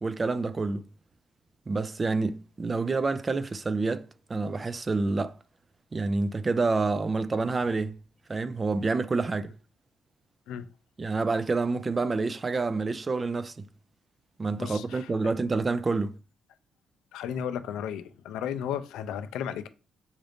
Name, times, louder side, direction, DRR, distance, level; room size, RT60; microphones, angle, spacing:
voice 1, 0.0-0.8 1.7-5.4 5.9-8.0 8.3-9.5 11.0-13.7 14.4-16.1, right 3 dB, 30° right, 0.3 m, -28 dB
voice 2, 14.6-15.1 17.1-19.7, left 9 dB, 90° left, 0.4 m, -34 dB
3.9 x 2.5 x 3.3 m
cardioid pair, 90°, 0 cm